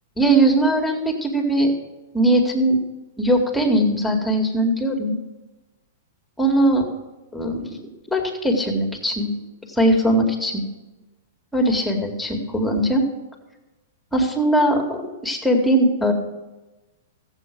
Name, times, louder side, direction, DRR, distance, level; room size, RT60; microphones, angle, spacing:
voice 1, 0.2-1.7 2.1-2.8 3.2-5.2 6.4-6.9 7.3-7.7 8.1-9.3 9.7-10.7 11.5-13.0 14.1-16.1, right 1 dB, 5° left, 2 dB, 2.4 m, -20 dB
15.0 x 8.2 x 6.2 m, 1.1 s
hypercardioid pair, 110°, 0 cm